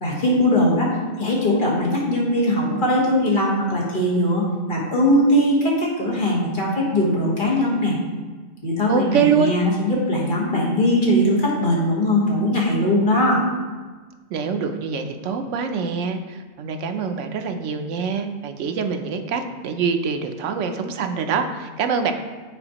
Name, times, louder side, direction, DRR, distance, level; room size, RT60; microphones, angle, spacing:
voice 1, 0.0-8.0 8.6-13.4, left 1 dB, 40° left, -4 dB, 1.4 m, -20 dB
voice 2, 8.9-9.6 14.3-22.1, right 6 dB, 75° right, 6 dB, 0.9 m, -24 dB
8.8 x 4.1 x 2.9 m, 1.4 s
omnidirectional pair, 1.3 m